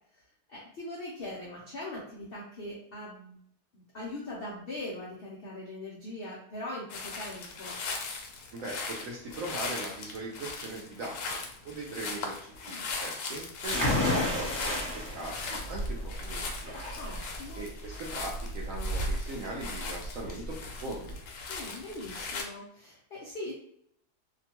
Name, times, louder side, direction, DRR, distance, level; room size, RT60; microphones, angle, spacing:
voice 1, 0.1-3.4 3.7-7.8 12.6-12.9 17.0-17.6 21.5-23.5, left 1 dB, 55° left, -5 dB, 0.6 m, -41 dB
sound 1, 6.9-22.4, left 4 dB, 80° left, 1.1 m, -39 dB
voice 2, 8.5-16.7 17.5-21.2, right 2 dB, 70° right, -2 dB, 0.9 m, -40 dB
sound 2, 13.7-21.2, left 1 dB, 35° left, 1.3 m, -32 dB
2.8 x 2.2 x 2.8 m, 0.68 s
omnidirectional pair, 1.7 m